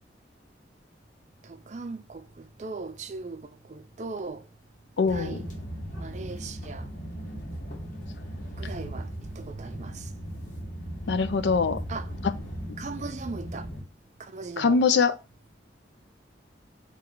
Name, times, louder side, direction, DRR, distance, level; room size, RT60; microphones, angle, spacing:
voice 1, 1.4-4.5 5.1-5.5 5.9-6.9 8.5-10.1 11.9-12.1 12.8-13.7 14.2-14.8, right 3 dB, 40° right, 0.4 m, -39 dB
voice 2, 5.0-5.4 11.1-11.8 14.6-15.1, left 5 dB, 70° left, 0.4 m, -22 dB
sound 1, 5.1-13.8, equal, 45° left, 1.3 m, -37 dB
4.4 x 3.1 x 3.8 m
head